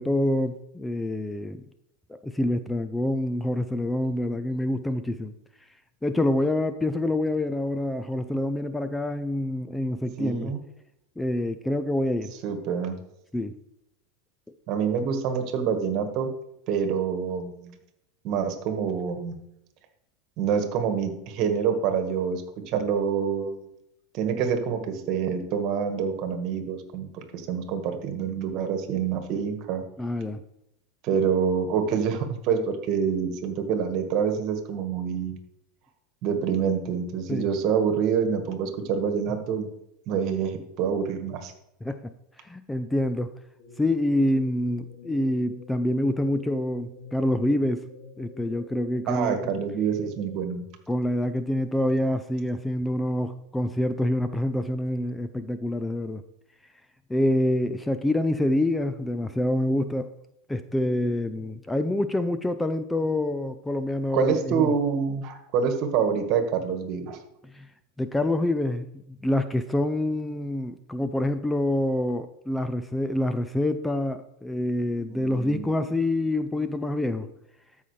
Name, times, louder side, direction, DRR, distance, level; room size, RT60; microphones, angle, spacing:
voice 1, 0.0-1.6 2.1-5.3 6.0-10.5 11.2-12.3 13.3-13.6 30.0-30.4 37.3-37.5 41.8-43.3 43.8-47.9 48.2-49.5 50.9-56.2 57.1-60.1 60.5-64.7 67.4-67.7 68.0-77.3, left 1 dB, 10° left, 11 dB, 0.5 m, -26 dB
voice 2, 10.2-10.6 12.4-13.0 14.7-16.3 16.7-17.7 18.2-19.4 20.4-23.6 24.1-29.8 31.0-35.4 36.2-39.7 40.1-41.5 49.1-50.6 64.1-67.2 75.1-75.7, right 7 dB, 50° right, 6 dB, 1.6 m, -26 dB
sound 1, 43.6-50.4, left 4 dB, 65° left, 1.8 m, -47 dB
13.0 x 5.6 x 3.3 m, 0.82 s
hypercardioid pair, 95°, 0 cm